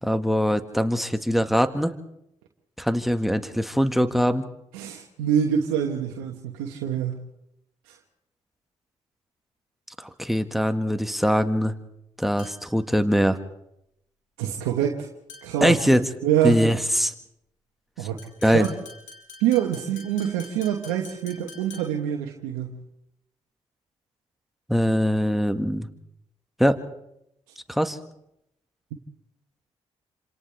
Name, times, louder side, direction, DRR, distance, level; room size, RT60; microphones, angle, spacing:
voice 1, 0.0-1.9 2.8-4.5 10.0-11.7 12.2-13.4 15.6-16.0 16.4-17.1 18.4-18.7 24.7-25.9 26.6-26.8 27.7-28.0, equal, ahead, 9 dB, 1.7 m, -22 dB
voice 2, 4.7-7.2 14.4-15.1 15.4-15.8 16.2-16.6 18.0-18.2 18.4-18.7 19.4-22.8, right 10 dB, 90° right, 1 dB, 1.3 m, -25 dB
sound 1, 12.4-12.8 15.3-15.7 18.2-22.1, left 4 dB, 75° left, 4.9 m, -46 dB
28.5 x 27.0 x 3.5 m, 0.79 s
hypercardioid pair, 45°, 14 cm